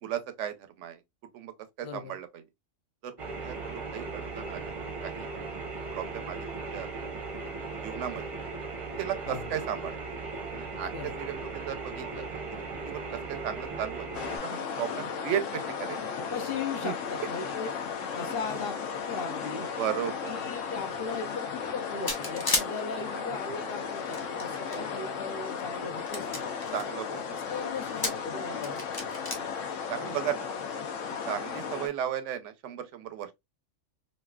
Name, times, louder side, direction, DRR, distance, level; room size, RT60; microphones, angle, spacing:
voice 1, 0.0-1.0 1.3-1.5 1.8-2.4 3.0-4.7 5.0-5.3 5.9-6.9 7.8-8.2 9.0-10.0 10.5-12.2 12.5-14.1 14.4-16.0 16.8-16.9 18.2-18.4 19.8-20.3 23.1-23.4 26.7-27.2 29.4-29.5 29.9-30.5 31.3-33.3, right 10 dB, 80° right, 0.9 m, -35 dB
voice 2, 1.8-2.2 9.3-9.5 10.9-11.2 16.3-17.7 18.1-19.7 20.2-26.5 27.3-29.1, left 5 dB, 55° left, 0.9 m, -38 dB
sound 1, 3.2-14.4, right 3 dB, 35° right, 0.7 m, -37 dB
sound 2, 14.1-31.9, left 6 dB, 85° left, 1.0 m, -35 dB
sound 3, 22.1-22.7 23.8-24.8 25.4-25.5 26.0-26.8 27.8-28.3 28.6-29.4, left 2 dB, 30° left, 0.4 m, -31 dB
3.1 x 2.6 x 2.2 m
omnidirectional pair, 1.3 m